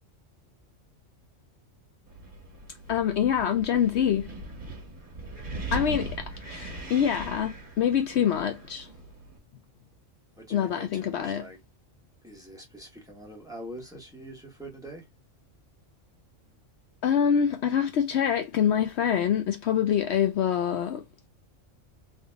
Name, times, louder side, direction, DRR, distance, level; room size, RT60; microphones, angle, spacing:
Wind, 2.1-9.4, right 1 dB, 45° right, 1.5 m, -40 dB
voice 1, 2.9-4.3 5.7-8.9 10.5-11.5 17.0-21.0, left 8 dB, 70° left, 0.8 m, -25 dB
voice 2, 10.4-11.6 12.2-15.1, right 1 dB, 5° right, 1.4 m, -44 dB
3.6 x 2.7 x 3.4 m
omnidirectional pair, 1.3 m